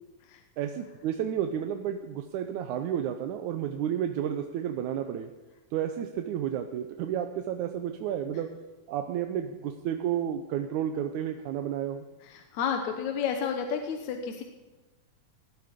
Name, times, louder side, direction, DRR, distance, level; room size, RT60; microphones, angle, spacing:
voice 1, 0.6-5.3 5.7-8.5 8.9-12.1, right 9 dB, 75° right, 6 dB, 2.0 m, -31 dB
voice 2, 12.2-14.4, left 7 dB, 70° left, 4 dB, 2.2 m, -31 dB
18.5 x 12.5 x 5.2 m, 1.1 s
omnidirectional pair, 3.8 m